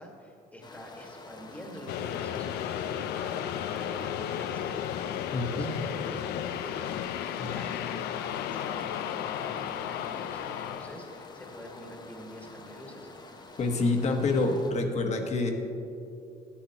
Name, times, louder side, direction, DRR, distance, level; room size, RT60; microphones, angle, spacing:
voice 1, 0.0-6.3 6.6-7.1 7.4-13.1, equal, 10° left, 0 dB, 1.6 m, -46 dB
sound 1, 0.6-14.7, left 3 dB, 25° left, 0.8 m, -48 dB
sound 2, 1.9-12.1, left 10 dB, 75° left, 0.5 m, -34 dB
voice 2, 5.3-5.8 7.4-7.5 13.6-15.5, left 3 dB, 40° left, 4 dB, 1.3 m, -27 dB
13.0 x 10.5 x 2.9 m, 2.7 s
cardioid pair, 110°, 17 cm